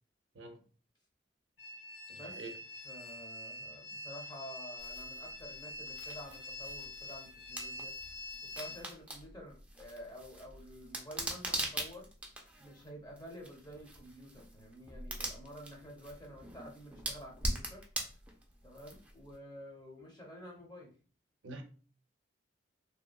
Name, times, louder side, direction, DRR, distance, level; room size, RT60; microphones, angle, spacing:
sound 1, 1.6-8.8, left 2 dB, 90° left, 1.0 m, -45 dB
voice 1, 2.1-2.5 21.4-21.6, right 2 dB, 90° right, 5 dB, 0.5 m, -46 dB
voice 2, 2.8-7.9 8.5-12.1 12.6-17.9 18.6-20.9, equal, 20° left, 0 dB, 0.8 m, -50 dB
sound 2, 4.8-19.3, right 1 dB, 5° right, 0.4 m, -43 dB
2.8 x 2.3 x 2.3 m, 0.39 s
head